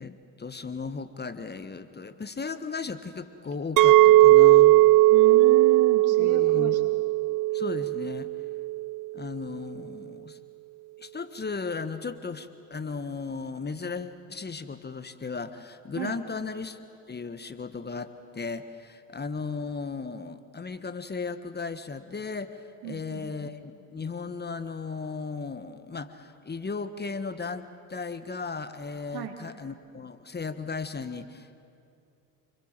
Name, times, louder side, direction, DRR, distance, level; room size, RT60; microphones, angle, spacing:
voice 1, 0.0-4.8 6.2-6.8 7.5-8.3 9.1-10.4 11.0-16.8 17.1-31.6, left 4 dB, 25° left, 11 dB, 1.4 m, -36 dB
Chink clink, 3.8-8.9, right 17 dB, 50° right, 0.6 m, -18 dB
voice 2, 5.1-6.9 16.0-16.2 22.8-23.3 29.1-29.4, right 11 dB, 65° right, 4 dB, 3.5 m, -34 dB
29.0 x 23.0 x 7.5 m, 2.6 s
hypercardioid pair, 70°, 41 cm